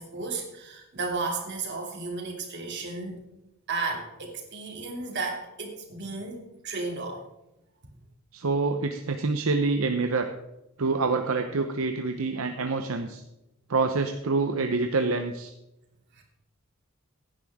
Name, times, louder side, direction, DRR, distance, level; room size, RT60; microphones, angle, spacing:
voice 1, 0.0-3.2 3.7-7.2 16.1-16.2, right 3 dB, 55° right, 1 dB, 2.8 m, -34 dB
voice 2, 8.3-10.3 10.8-13.2 13.7-15.5, right 3 dB, 75° right, 6 dB, 0.8 m, -26 dB
16.0 x 10.0 x 3.6 m, 0.92 s
head